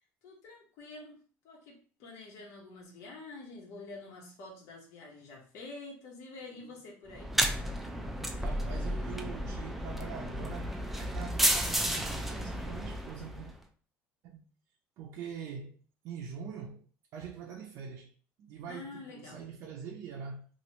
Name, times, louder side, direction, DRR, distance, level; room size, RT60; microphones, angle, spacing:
voice 1, 0.2-7.3 18.7-19.4, left 3 dB, 65° left, 1.3 m, -47 dB
sound 1, 7.1-13.5, equal, 5° right, 0.3 m, -32 dB
voice 2, 8.4-13.5 14.2-14.4 15.0-15.8 16.0-16.8 17.1-18.1 18.4-20.5, right 7 dB, 65° right, 0.5 m, -44 dB
3.1 x 2.5 x 2.9 m
cardioid pair, 150°, 5 cm